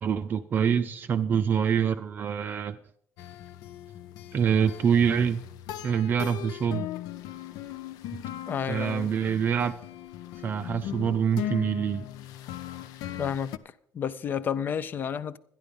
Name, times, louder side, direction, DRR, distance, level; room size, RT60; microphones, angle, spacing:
voice 1, 0.0-2.8 4.3-5.4 5.8-6.9 8.1-8.2 8.7-9.7 10.4-12.1, right 7 dB, 30° right, 0.4 m, -25 dB
sound 1, 3.2-13.6, left 12 dB, 75° left, 0.6 m, -39 dB
voice 2, 8.5-9.1 13.2-13.5 13.9-15.4, left 8 dB, 30° left, 0.5 m, -30 dB
12.5 x 10.5 x 5.2 m
cardioid pair, 175°, 6 cm